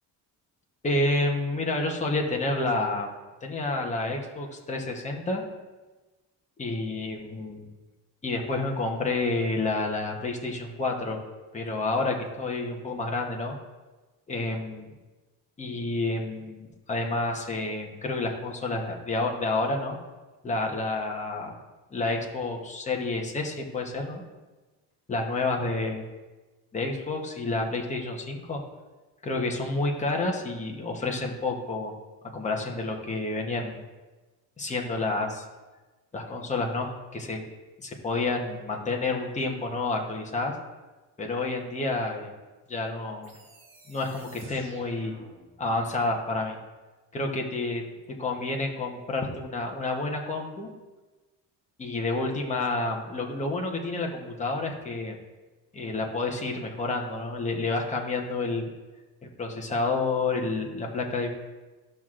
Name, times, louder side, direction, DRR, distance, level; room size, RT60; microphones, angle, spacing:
voice 1, 0.8-3.1 3.4-5.4 6.6-7.7 8.2-11.2 11.5-13.6 14.3-14.9 15.6-20.0 20.4-21.5 21.9-24.2 25.1-26.0 26.7-28.6 29.2-32.0 32.3-33.8 34.6-35.4 36.1-37.4 37.8-40.5 41.2-42.3 42.7-43.3 43.9-45.2 45.6-46.6 47.1-47.8 48.2-50.7 51.8-55.1 55.7-58.6 59.4-61.3, left 2 dB, 15° left, 1 dB, 0.9 m, -29 dB
sound 1, 43.2-46.1, right 3 dB, 30° right, 1.6 m, -53 dB
14.0 x 6.0 x 2.4 m, 1.2 s
cardioid pair, 180°, 42 cm